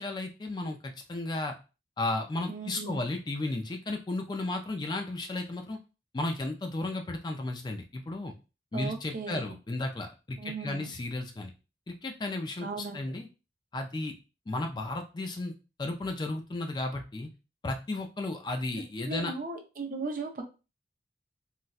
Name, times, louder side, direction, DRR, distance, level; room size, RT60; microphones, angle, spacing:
voice 1, 0.0-1.5 2.0-5.8 6.1-8.3 8.7-11.5 11.9-12.7 12.9-13.3 13.7-14.1 14.5-17.3 17.6-19.3, left 2 dB, 25° left, 4 dB, 0.3 m, -34 dB
voice 2, 2.5-3.1 8.7-9.6 10.4-10.9 12.6-13.0 19.1-20.4, right 4 dB, 50° right, 3 dB, 0.5 m, -37 dB
4.0 x 2.1 x 2.3 m, 0.30 s
head